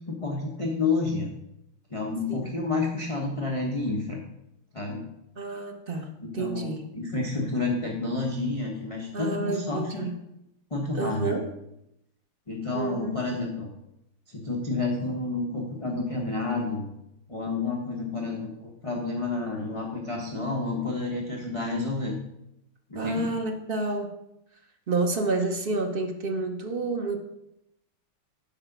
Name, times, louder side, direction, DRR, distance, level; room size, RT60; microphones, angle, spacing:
voice 1, 0.1-1.3 1.9-4.2 4.7-5.0 6.2-10.0 10.7-11.4 12.5-13.7 14.3-16.9 17.3-22.2 22.9-23.3, left 3 dB, 30° left, -2 dB, 0.6 m, -30 dB
voice 2, 5.4-6.8 9.1-10.1 10.9-11.4 12.7-13.2 22.9-24.1 24.9-27.2, right 3 dB, 60° right, 2 dB, 0.5 m, -29 dB
8.9 x 4.9 x 5.9 m, 0.85 s
omnidirectional pair, 2.3 m